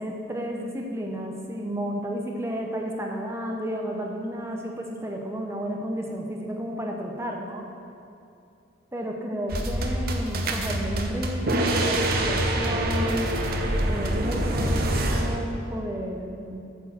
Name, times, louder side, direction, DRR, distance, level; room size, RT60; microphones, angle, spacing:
voice 1, 0.0-7.6 8.9-13.4 13.8-16.6, equal, 15° right, 0 dB, 0.6 m, -32 dB
sound 1, 9.5-15.4, right 1 dB, 45° right, 0.7 m, -25 dB
8.3 x 4.5 x 7.3 m, 2.7 s
head